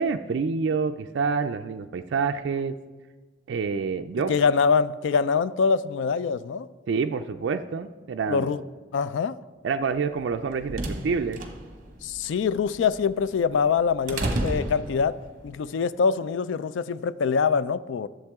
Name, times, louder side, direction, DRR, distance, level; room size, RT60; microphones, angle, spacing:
voice 1, 0.0-2.7 3.5-4.3 6.9-8.5 9.6-11.4, right 5 dB, 65° right, 6 dB, 0.3 m, -27 dB
voice 2, 4.3-6.7 8.3-8.6 8.9-9.4 12.0-15.2 15.4-18.1, left 5 dB, 70° left, 16 dB, 0.3 m, -24 dB
sound 1, 10.2-15.4, right 1 dB, 40° right, 1.0 m, -33 dB
11.5 x 7.3 x 3.5 m, 1.3 s
head